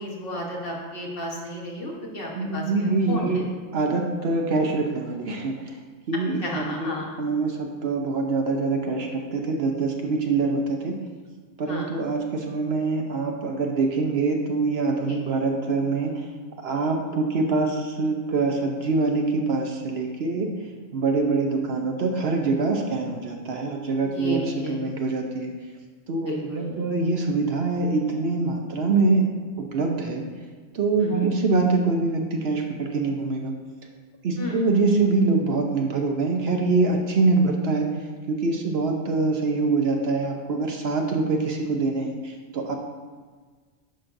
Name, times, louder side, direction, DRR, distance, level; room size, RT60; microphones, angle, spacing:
voice 1, 0.0-3.4 6.4-7.0 11.7-11.9 15.1-15.2 24.0-24.8 26.3-26.8 31.0-31.3 34.4-34.6, left 1 dB, 50° left, -3 dB, 1.4 m, -33 dB
voice 2, 2.3-3.5 3.7-5.8 6.1-6.9 7.2-11.0 11.6-16.2 16.6-20.5 20.9-25.5 26.1-29.2 29.6-30.3 30.7-33.5 34.2-37.9 38.3-42.7, right 3 dB, 60° right, 2 dB, 0.9 m, -24 dB
10.5 x 5.9 x 2.6 m, 1.5 s
omnidirectional pair, 1.3 m